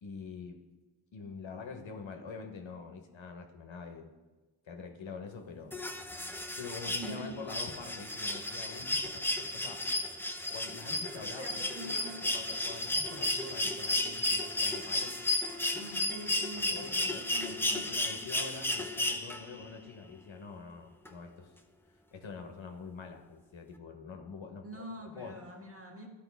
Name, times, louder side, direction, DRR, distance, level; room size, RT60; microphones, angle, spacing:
voice 1, 0.0-0.6 1.1-4.1 4.6-5.8 6.6-9.8 10.5-15.1 16.7-21.5 22.1-25.4, left 5 dB, 65° left, 4 dB, 1.1 m, -45 dB
sound 1, 5.7-19.6 21.0-21.1, left 2 dB, 5° left, 0.6 m, -33 dB
voice 2, 7.0-7.4 11.2-12.2 15.7-17.9 24.6-26.1, right 1 dB, 25° right, 1 dB, 1.4 m, -45 dB
12.5 x 5.2 x 3.4 m, 1.2 s
cardioid pair, 70°, 50 cm